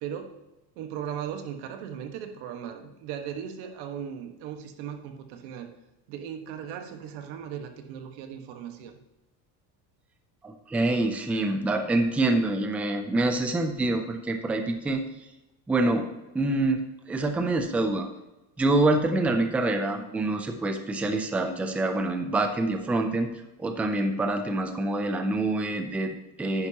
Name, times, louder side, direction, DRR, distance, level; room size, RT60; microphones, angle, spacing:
voice 1, 0.0-0.3 0.7-5.7 6.1-8.9, right 8 dB, 70° right, 5 dB, 1.6 m, -37 dB
voice 2, 10.4-15.0 15.7-16.1 16.3-18.1 18.6-23.3 23.6-26.7, right 2 dB, 5° right, 6 dB, 0.3 m, -26 dB
10.5 x 9.9 x 2.9 m, 1.0 s
cardioid pair, 165°, 45 cm